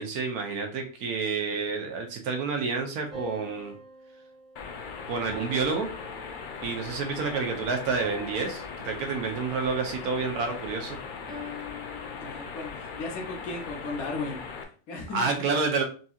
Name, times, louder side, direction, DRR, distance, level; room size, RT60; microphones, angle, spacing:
voice 1, 0.0-3.8 5.1-5.9 6.6-11.0 15.1-15.8, right 4 dB, 85° right, 4 dB, 1.4 m, -29 dB
sound 1, 3.1-6.8 8.0-9.6 11.3-12.8, left 2 dB, 5° right, 0.9 m, -45 dB
sound 2, 4.6-14.6, left 5 dB, 90° left, 0.4 m, -39 dB
voice 2, 12.1-15.3, left 3 dB, 70° left, 1 dB, 1.4 m, -36 dB
5.9 x 2.9 x 2.3 m, 0.39 s
omnidirectional pair, 1.6 m